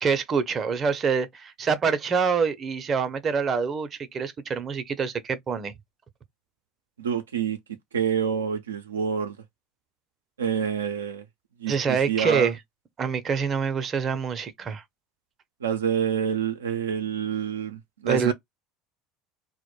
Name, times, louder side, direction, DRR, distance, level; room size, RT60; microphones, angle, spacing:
voice 1, 0.0-5.7 11.7-12.6 13.0-14.8 18.1-18.3, right 6 dB, 35° right, 0.5 m, -26 dB
voice 2, 7.0-7.6 7.9-9.4 10.4-11.2 11.6-12.5 15.6-18.3, right 8 dB, 85° right, 0.3 m, -27 dB
2.1 x 2.1 x 2.9 m
hypercardioid pair, 75°, 0 cm